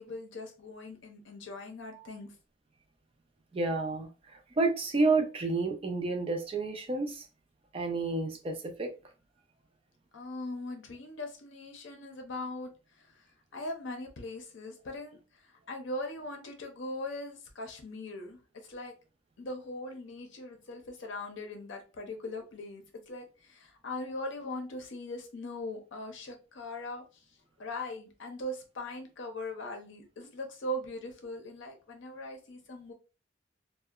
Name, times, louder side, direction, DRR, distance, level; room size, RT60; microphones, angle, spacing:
voice 1, 0.0-2.3 10.1-13.3 13.5-18.9 19.4-27.2 27.6-32.9, left 1 dB, 65° left, 0.6 m, -40 dB
voice 2, 3.5-7.2 7.7-8.9, right 3 dB, 30° right, 0.4 m, -30 dB
2.7 x 2.1 x 2.3 m
head